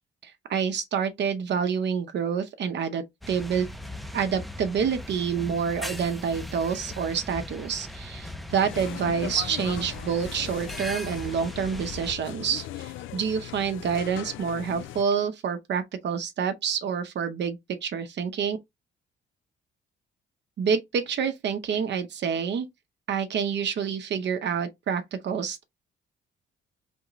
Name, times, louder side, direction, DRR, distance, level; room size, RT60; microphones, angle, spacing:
voice 1, 0.2-3.7 4.1-18.6 20.6-22.7 23.1-25.6, right 7 dB, 60° right, 0.8 m, -28 dB
sound 1, 3.2-12.1, left 1 dB, ahead, 0.6 m, -39 dB
sound 2, 8.5-15.0, left 13 dB, 80° left, 0.4 m, -39 dB
3.8 x 3.6 x 3.0 m
cardioid pair, 90°, 20 cm